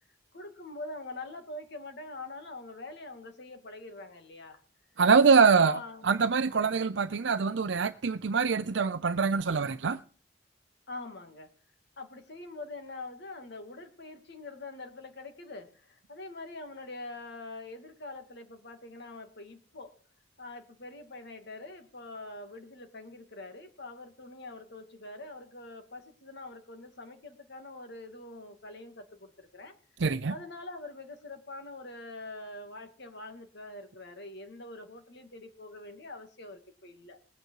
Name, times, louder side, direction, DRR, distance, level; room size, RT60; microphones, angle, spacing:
voice 1, 0.3-4.6 5.1-6.2 6.6-6.8 10.9-11.5 12.0-20.0 20.4-29.8 30.3-37.2, left 2 dB, 65° left, 2.5 m, -44 dB
voice 2, 5.0-5.8 6.0-10.0 30.0-30.3, right 5 dB, 70° right, 0.6 m, -24 dB
20.0 x 9.2 x 4.8 m
head